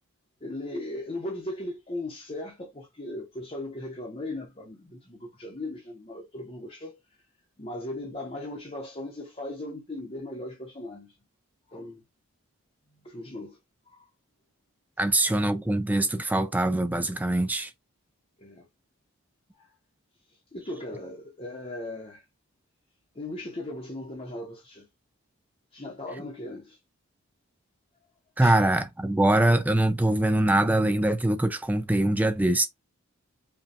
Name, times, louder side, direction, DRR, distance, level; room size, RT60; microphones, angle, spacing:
voice 1, 0.4-7.0 7.6-11.2 11.7-12.0 13.0-13.6 13.9-14.1 18.4-18.7 19.6-19.7 20.5-22.2 23.1-24.9 25.7-26.8 28.4-28.6, left 1 dB, 25° left, 0.8 m, -38 dB
voice 2, 15.0-17.7 28.4-32.7, right 1 dB, 5° right, 0.3 m, -23 dB
5.2 x 2.2 x 2.8 m
head